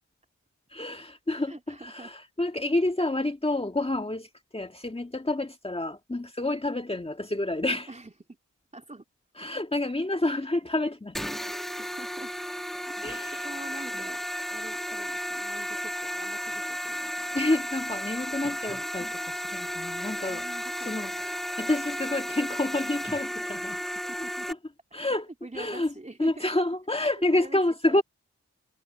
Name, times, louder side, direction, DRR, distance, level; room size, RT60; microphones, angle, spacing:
voice 1, 0.7-1.5 1.8-4.3 4.5-7.9 9.4-11.3 13.0-13.4 17.3-20.4 20.8-21.1 21.6-23.8 24.9-25.3 25.5-25.9 26.2-28.0, left 2 dB, 20° left, 1.8 m, -28 dB
voice 2, 1.3-2.1 7.9-8.1 8.7-9.0 10.3-10.5 11.8-12.3 12.9-14.2 14.5-17.4 20.3-21.2 24.0-24.5 25.1-26.5 27.1-28.0, right 2 dB, 25° right, 3.1 m, -45 dB
sound 1, 11.1-24.5, equal, ahead, 2.0 m, -34 dB
cardioid pair, 40°, 30 cm